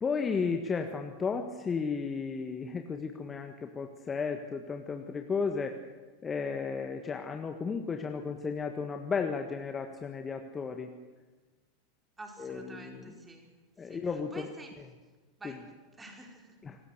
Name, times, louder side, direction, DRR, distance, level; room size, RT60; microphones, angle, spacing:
voice 1, 0.0-5.8 6.2-10.9 12.4-13.1 13.8-14.5 15.4-15.5 16.6-16.8, left 5 dB, 20° left, 5 dB, 1.6 m, -34 dB
voice 2, 12.2-13.5 13.8-14.8 15.4-15.7 16.0-16.6, right 2 dB, 10° right, 1 dB, 5.0 m, -48 dB
26.0 x 19.5 x 6.7 m, 1.3 s
figure-of-eight pair, 90°, 0 cm